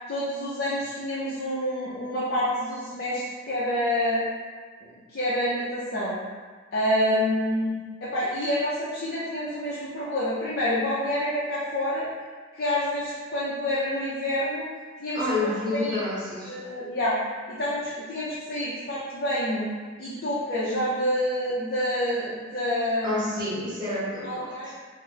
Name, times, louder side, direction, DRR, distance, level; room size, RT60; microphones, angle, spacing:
voice 1, 0.0-4.2 5.1-6.2 6.7-12.1 12.5-14.7 15.0-16.0 16.5-17.2 17.5-19.7 20.0-23.3 24.2-24.7, left 1 dB, 50° left, -9 dB, 0.5 m, -28 dB
voice 2, 15.1-16.6 23.0-24.7, left 2 dB, 20° right, -9 dB, 1.1 m, -29 dB
2.9 x 2.0 x 3.7 m, 1.5 s
head